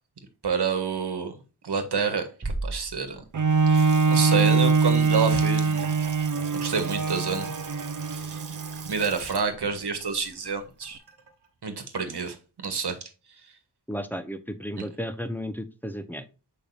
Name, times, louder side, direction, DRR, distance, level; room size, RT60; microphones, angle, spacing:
voice 1, 0.4-1.3 1.6-3.2 3.7-5.9 6.5-7.5 8.1-8.4 8.8-11.0 11.6-12.4 12.6-13.1, right 5 dB, 70° right, 7 dB, 1.5 m, -28 dB
Bass drum, 2.4-4.1, right 2 dB, 30° right, 1.1 m, -35 dB
Bowed string instrument, 3.3-9.0 9.6-9.7, right 4 dB, 45° right, 0.8 m, -23 dB
Water tap faucet / Sink (filling or washing) / Splash splatter, 3.4-11.5, right 5 dB, 90° right, 1.5 m, -44 dB
voice 2, 13.9-16.2, equal, 5° left, 9 dB, 1.0 m, -33 dB
6.9 x 5.2 x 2.6 m, 0.32 s
cardioid pair, 50°, 42 cm